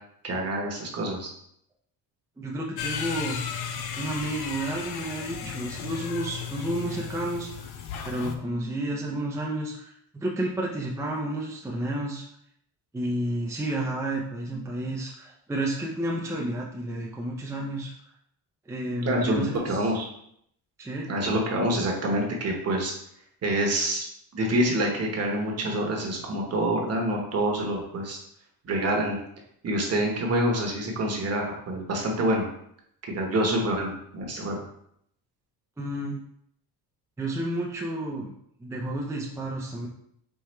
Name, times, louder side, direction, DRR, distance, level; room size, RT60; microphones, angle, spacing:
voice 1, 0.2-1.3 19.0-20.0 21.1-22.9 23.4-24.0 24.3-28.2 28.6-29.2 29.6-32.5 33.1-34.6, right 1 dB, 40° right, 0 dB, 1.1 m, -26 dB
voice 2, 2.4-3.4 3.7-12.2 12.9-17.9 18.7-19.9 20.8-21.1 35.8-36.2 37.2-38.3 38.6-39.9, right 1 dB, 5° right, -3 dB, 0.4 m, -31 dB
sound 1, 2.8-8.4, left 7 dB, 70° left, 0.6 m, -35 dB
4.8 x 3.4 x 3.2 m, 0.71 s
cardioid pair, 145°, 40 cm